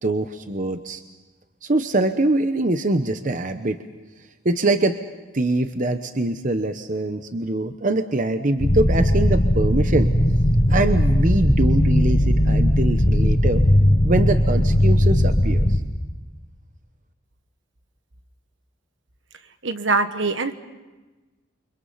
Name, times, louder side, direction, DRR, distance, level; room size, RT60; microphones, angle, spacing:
voice 1, 0.0-1.0 1.6-3.8 4.4-5.0 5.3-10.1 10.7-13.6 14.0-15.7, right 2 dB, 40° right, 8 dB, 0.9 m, -23 dB
sound 1, 8.6-15.8, left 1 dB, 35° left, 2.1 m, -18 dB
voice 2, 19.6-20.5, right 3 dB, 70° right, 9 dB, 1.4 m, -23 dB
29.5 x 25.0 x 5.7 m, 1.2 s
head